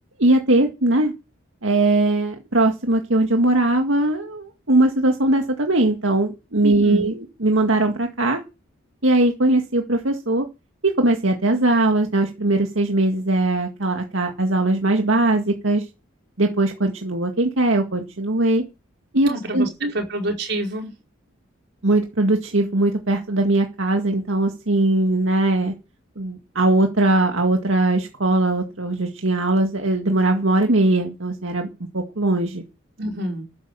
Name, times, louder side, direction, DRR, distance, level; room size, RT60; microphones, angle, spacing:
voice 1, 0.2-1.1 1.6-8.4 9.0-10.5 10.8-15.9 16.4-18.6 19.1-19.9 21.8-25.7 26.2-31.7 31.9-32.6, right 2 dB, 75° right, 2.0 m, -20 dB
voice 2, 6.6-7.1 19.3-19.7 19.9-20.9 33.0-33.4, right 1 dB, 55° right, 4.8 m, -27 dB
13.0 x 10.5 x 7.0 m
head